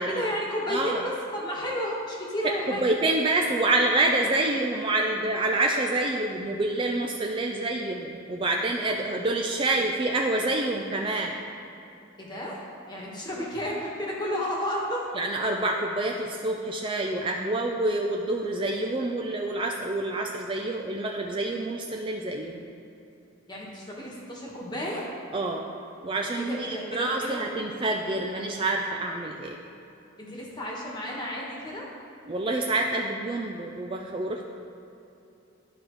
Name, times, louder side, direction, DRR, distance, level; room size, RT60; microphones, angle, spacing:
voice 1, 0.1-2.8 12.2-15.0 23.5-25.1 26.4-27.4 30.2-31.9, equal, 20° left, -3 dB, 1.3 m, -32 dB
voice 2, 0.7-1.0 2.4-11.4 15.2-22.7 25.3-25.6 26.0-29.6 32.3-34.5, right 2 dB, 25° right, 1 dB, 0.4 m, -27 dB
12.5 x 4.9 x 3.1 m, 2.8 s
head